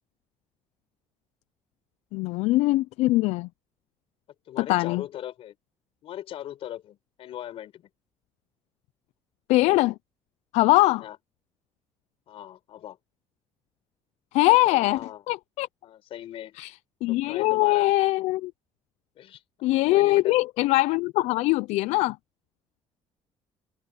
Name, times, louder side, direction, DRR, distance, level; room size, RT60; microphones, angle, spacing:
voice 1, 2.1-3.5 4.6-5.0 9.5-9.9 10.5-11.0 14.3-15.0 15.3-15.7 16.6-16.7 17.0-18.5 19.6-22.2, left 19 dB, 90° left, 0.4 m, -22 dB
voice 2, 4.5-5.5 6.0-7.9 11.0-11.2 12.3-13.0 14.5-15.2 15.8-16.6 17.1-17.9 19.2-19.4 19.9-20.4, left 11 dB, 60° left, 4.3 m, -39 dB
open air
cardioid pair, 145°, 11 cm